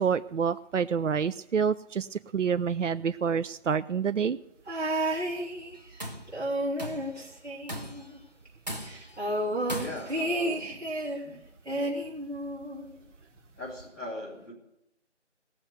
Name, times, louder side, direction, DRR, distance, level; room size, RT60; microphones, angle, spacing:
voice 1, 0.0-4.4, right 6 dB, 85° right, 13 dB, 0.5 m, -28 dB
sound 1, 4.7-6.0 6.3-8.2 8.5-8.6 8.8-11.2 11.7-12.9 13.8-13.9, right 1 dB, 65° right, 3.5 m, -31 dB
Tools, 5.7-6.3 6.8-7.2 7.7-8.1 8.7-9.2 9.7-10.3, right 1 dB, 35° right, 1.5 m, -38 dB
voice 2, 9.8-10.7 11.2-11.4 11.7-11.9 13.6-14.5, left 1 dB, 15° left, -11 dB, 3.0 m, -40 dB
17.0 x 7.0 x 8.2 m, 0.80 s
figure-of-eight pair, 170°, 36 cm